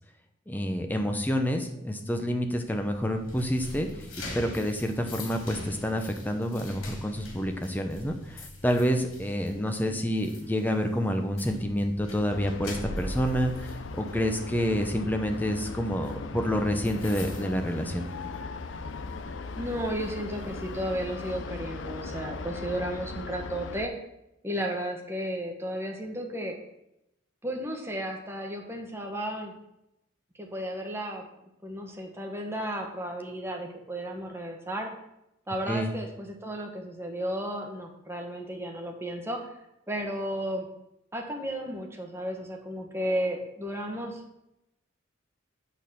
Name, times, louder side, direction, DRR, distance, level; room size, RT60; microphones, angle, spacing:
voice 1, 0.5-3.9 4.3-18.0 35.7-35.9, equal, 10° left, 5 dB, 0.8 m, -28 dB
sound 1, 2.6-18.6 18.9-19.2 19.7-21.3, left 1 dB, 90° left, 2.9 m, -44 dB
sound 2, 12.3-23.9, left 3 dB, 65° left, 0.5 m, -38 dB
voice 2, 19.6-23.9 24.4-26.5 27.4-29.5 30.4-31.2 31.6-34.9 35.5-39.5 39.9-40.7 41.1-44.4, equal, 10° right, 2 dB, 1.3 m, -33 dB
8.9 x 4.1 x 7.0 m, 0.85 s
head